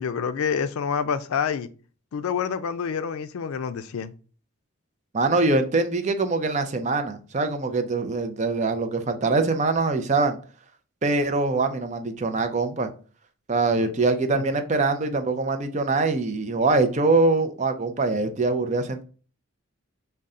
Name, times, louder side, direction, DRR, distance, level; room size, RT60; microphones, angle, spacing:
voice 1, 0.0-1.7 2.1-4.1 13.8-13.9 14.3-14.4, left 6 dB, 80° left, 0.4 m, -27 dB
voice 2, 5.1-10.4 11.0-12.9 13.5-19.0, right 3 dB, 35° right, 0.4 m, -23 dB
5.4 x 2.2 x 3.6 m
head